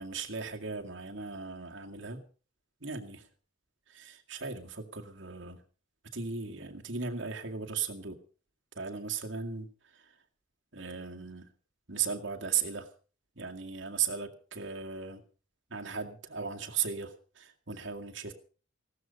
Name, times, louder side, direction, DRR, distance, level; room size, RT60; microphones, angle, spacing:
voice 1, 0.0-2.2 2.8-3.2 3.9-5.6 6.1-8.2 8.8-9.7 9.9-10.0 10.7-11.5 11.9-12.9 13.4-15.2 15.7-18.3, right 6 dB, 60° right, 3 dB, 2.1 m, -36 dB
16.5 x 12.5 x 5.3 m, 0.40 s
head